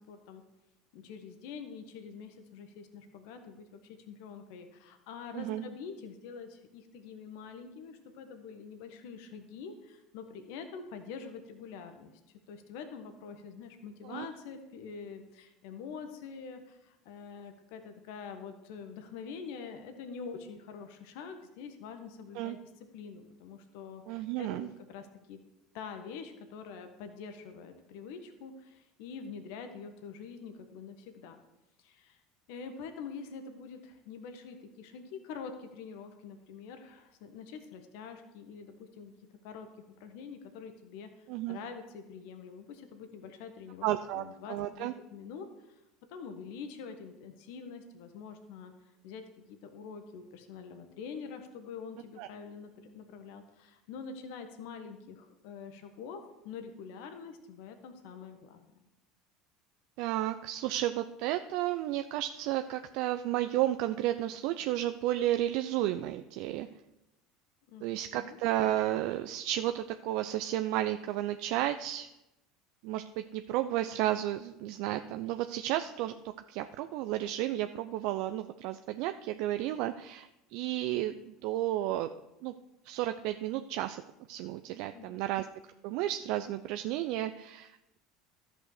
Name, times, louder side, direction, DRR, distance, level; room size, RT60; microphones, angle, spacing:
voice 1, 0.1-0.4 0.9-22.6 22.9-25.4 25.7-31.4 31.8-32.2 32.5-39.1 39.4-45.8 46.1-48.7 49.0-58.6 67.7-67.9 68.1-68.4 84.9-85.3, left 5 dB, 65° left, 7 dB, 1.3 m, -45 dB
voice 2, 24.1-24.7 41.3-41.6 43.8-44.9 52.2-52.3 60.0-66.7 67.8-72.1 72.8-76.2 76.5-82.1 82.4-82.5 82.8-84.0 84.3-85.5 85.8-88.0, right 13 dB, 65° right, 8 dB, 0.5 m, -32 dB
13.0 x 6.2 x 6.6 m, 0.93 s
hypercardioid pair, 75°, 0 cm